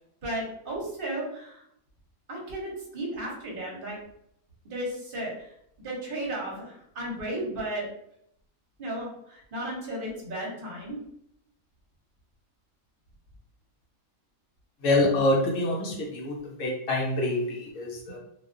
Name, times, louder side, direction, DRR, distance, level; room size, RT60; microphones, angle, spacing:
voice 1, 0.2-1.6 2.3-4.0 4.6-7.8 8.8-11.0, right 1 dB, 50° right, -3 dB, 0.8 m, -34 dB
voice 2, 14.8-18.2, left 2 dB, 70° left, -3 dB, 0.9 m, -26 dB
2.3 x 2.3 x 2.4 m, 0.74 s
omnidirectional pair, 1.5 m